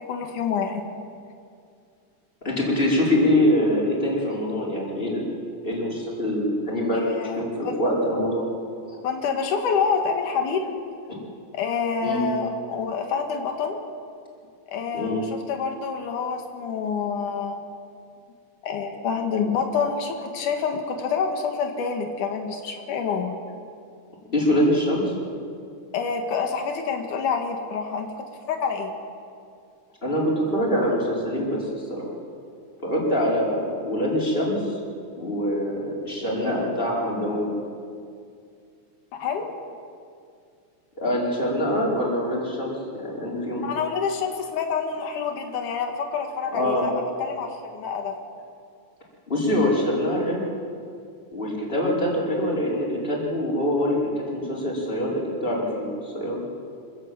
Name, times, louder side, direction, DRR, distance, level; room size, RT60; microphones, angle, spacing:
voice 1, 0.1-0.8 6.9-7.7 9.0-10.8 11.5-13.8 14.7-17.6 18.6-23.3 25.9-28.9 39.1-39.5 43.6-48.2, left 6 dB, 85° left, 4 dB, 3.1 m, -27 dB
voice 2, 2.4-5.2 5.6-7.0 7.4-8.5 8.9-9.0 11.1-11.2 12.0-12.3 14.9-15.2 24.3-25.1 30.0-32.1 32.8-34.8 35.2-37.5 41.0-43.7 46.5-46.9 49.3-50.4 51.3-56.4, left 1 dB, 15° left, -4 dB, 5.1 m, -24 dB
26.5 x 16.5 x 7.9 m, 2.3 s
omnidirectional pair, 3.5 m